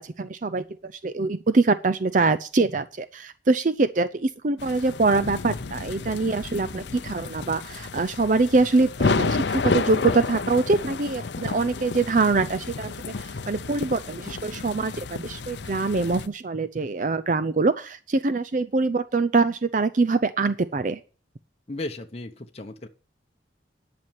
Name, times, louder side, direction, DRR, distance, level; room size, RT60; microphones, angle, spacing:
voice 1, 0.0-21.0, right 3 dB, 40° right, 11 dB, 0.5 m, -24 dB
sound 1, 4.6-16.3, left 4 dB, 65° left, 0.6 m, -31 dB
voice 2, 21.7-22.9, left 2 dB, 35° left, 4 dB, 0.8 m, -35 dB
11.0 x 6.0 x 8.9 m, 0.36 s
head